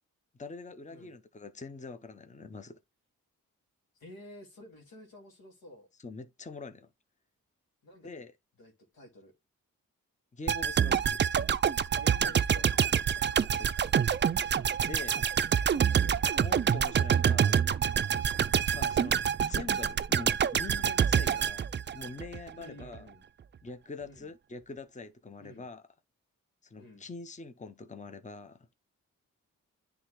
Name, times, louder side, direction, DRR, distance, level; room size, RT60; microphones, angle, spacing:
voice 1, 0.3-2.8 6.0-6.9 8.0-8.3 10.3-11.2 13.6-13.7 14.8-15.3 16.3-17.6 18.7-19.1 19.4-21.7 21.9-23.1 23.6-25.8 26.6-28.7, left 3 dB, 20° left, 0.8 m, -44 dB
voice 2, 3.9-5.9 7.8-8.1 8.6-9.3 11.9-13.5 16.0-16.3 18.8-19.0 22.6-23.2 24.0-24.3 25.4-25.7 26.8-27.0, left 1 dB, 85° left, 2.0 m, -51 dB
sound 1, 10.5-22.5 22.8-23.0, right 8 dB, 35° right, 0.4 m, -27 dB
9.8 x 3.4 x 3.1 m
supercardioid pair, 45°, 35 cm